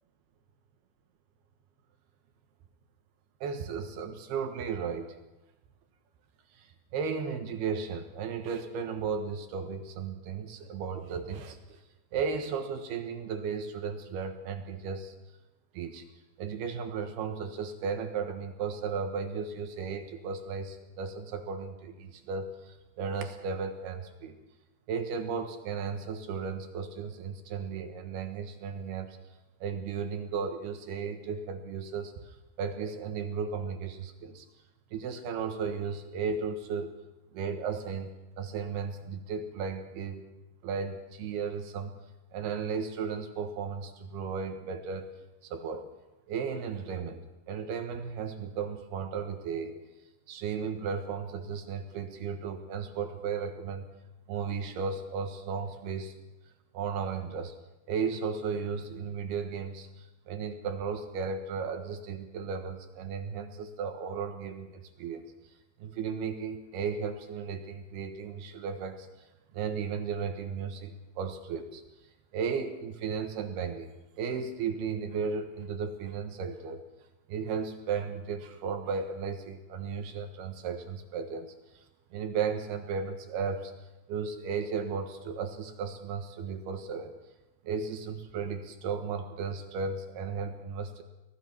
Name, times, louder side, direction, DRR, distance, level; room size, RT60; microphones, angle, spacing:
voice 1, 3.4-5.2 6.5-11.8 12.1-15.1 15.7-16.0 16.4-24.4 24.9-29.2 29.6-34.5 34.9-36.9 37.3-38.1 38.4-40.3 40.6-41.9 42.3-45.1 45.5-45.9 46.3-49.9 50.3-53.8 54.3-56.1 56.7-57.5 57.9-65.2 65.8-69.1 69.5-71.8 72.3-73.9 74.2-76.8 77.3-81.5 82.1-83.7 84.1-87.2 87.6-91.0, right 5 dB, 65° right, 6 dB, 3.2 m, -35 dB
24.0 x 18.5 x 6.0 m, 1.0 s
omnidirectional pair, 5.3 m